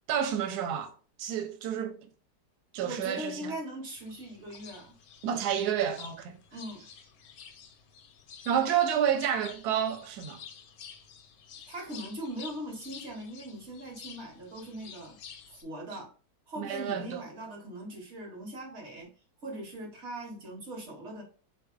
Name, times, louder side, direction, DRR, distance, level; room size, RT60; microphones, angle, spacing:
voice 1, 0.1-0.9 1.2-2.0 2.7-3.5 5.2-6.3 8.5-10.4 16.6-17.2, right 9 dB, 70° right, 1.1 m, -29 dB
voice 2, 2.8-4.9 6.5-6.9 11.7-15.2 15.5-16.1 16.5-19.1 19.4-21.2, right 1 dB, 50° right, 0.9 m, -40 dB
sound 1, 4.0-15.6, left 7 dB, 70° left, 0.9 m, -50 dB
3.8 x 2.8 x 2.4 m
omnidirectional pair, 1.8 m